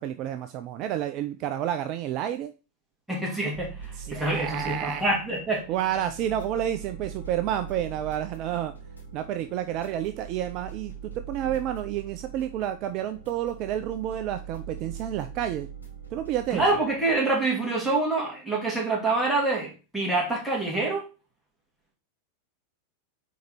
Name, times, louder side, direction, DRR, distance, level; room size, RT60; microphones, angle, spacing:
voice 1, 0.0-2.5 4.0-5.0 5.7-8.7 9.1-10.9 11.3-15.7 16.1-16.6, right 11 dB, 40° right, 9 dB, 0.4 m, -30 dB
voice 2, 3.1-5.6 16.5-21.0, right 2 dB, ahead, -3 dB, 2.5 m, -26 dB
sound 1, 3.5-17.2, right 6 dB, 80° left, 2.3 m, -42 dB
4.6 x 4.5 x 4.5 m, 0.33 s
figure-of-eight pair, 90°, 0 cm